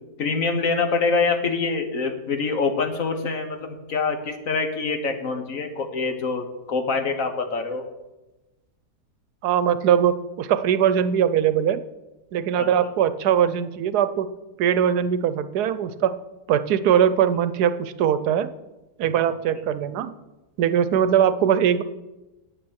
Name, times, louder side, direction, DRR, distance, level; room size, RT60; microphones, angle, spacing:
voice 1, 0.2-7.8 12.6-12.7 19.5-19.6, left 4 dB, 60° left, 6 dB, 1.5 m, -25 dB
voice 2, 9.4-11.8 12.3-14.3 14.6-16.1 16.5-18.5 19.0-20.1 20.6-21.8, right 9 dB, 85° right, 13 dB, 1.2 m, -21 dB
10.0 x 8.3 x 6.3 m, 1.1 s
omnidirectional pair, 1.7 m